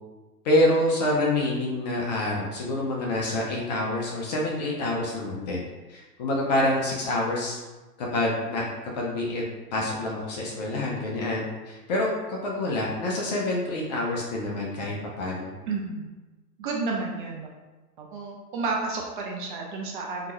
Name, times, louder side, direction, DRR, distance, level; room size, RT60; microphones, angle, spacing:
voice 1, 0.4-5.6 5.9-7.6 8.0-9.4 9.7-15.5, left 1 dB, 30° left, -2 dB, 0.4 m, -27 dB
voice 2, 15.7-16.1 16.6-17.5 18.0-20.3, right 3 dB, 35° right, -1 dB, 0.5 m, -31 dB
3.6 x 2.8 x 3.0 m, 1.2 s
hypercardioid pair, 115°, 48 cm